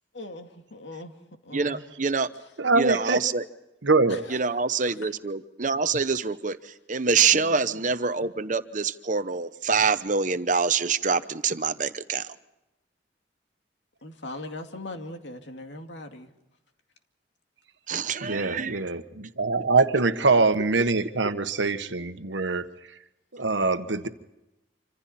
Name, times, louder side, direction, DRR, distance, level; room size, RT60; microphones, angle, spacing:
voice 1, 0.1-1.1 1.4-1.8 4.1-4.6 5.0-5.1 7.3-7.8 14.0-16.3, left 2 dB, 80° left, 4 dB, 2.3 m, -40 dB
voice 2, 1.5-2.3 2.7-3.4 4.3-12.3 17.9-18.8, right 5 dB, 45° right, 12 dB, 0.9 m, -26 dB
voice 3, 2.6-3.2 3.8-4.2 18.2-22.6 23.3-24.1, right 3 dB, 85° right, 9 dB, 1.3 m, -23 dB
27.0 x 26.0 x 4.3 m, 0.95 s
head